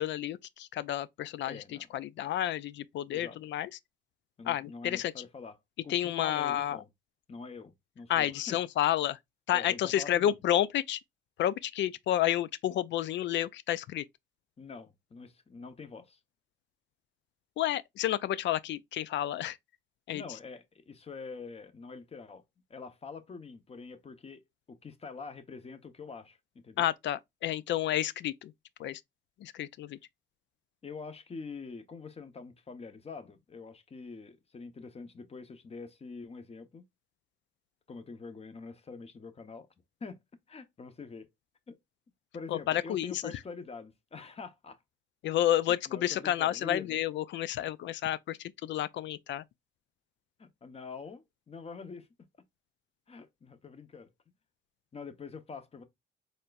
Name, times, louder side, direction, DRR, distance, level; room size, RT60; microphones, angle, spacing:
voice 1, 0.0-1.6 1.9-3.7 4.5-5.1 5.9-6.8 8.1-9.2 9.5-11.0 11.4-14.0 17.6-19.6 20.1-20.2 26.8-28.5 28.8-29.0 29.4-30.0 42.5-43.3 45.2-49.4, left 12 dB, 65° left, 0.4 m, -30 dB
voice 2, 1.5-1.9 3.1-3.4 4.4-5.5 5.8-6.9 7.3-8.6 9.5-10.4 14.6-16.2 20.1-22.4 22.7-26.9 30.8-36.9 37.9-39.7 40.0-40.2 40.5-41.3 41.7-41.8 42.3-44.8 45.9-47.0 50.4-52.1 53.1-54.1 54.9-55.8, left 4 dB, 30° left, 0.8 m, -45 dB
4.3 x 3.3 x 2.3 m
cardioid pair, 90°, 20 cm